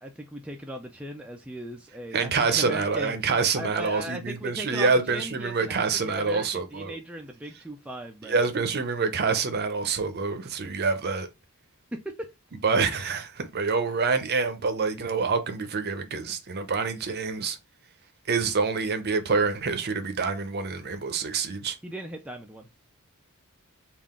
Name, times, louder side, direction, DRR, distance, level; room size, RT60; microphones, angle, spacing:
voice 1, 0.0-3.2 3.5-8.4 11.9-12.3 21.8-22.7, equal, 5° right, 0.3 m, -38 dB
voice 2, 2.1-6.9 8.2-11.3 12.6-17.6 18.3-21.8, right 4 dB, 45° right, 0.6 m, -26 dB
3.7 x 2.4 x 3.6 m
head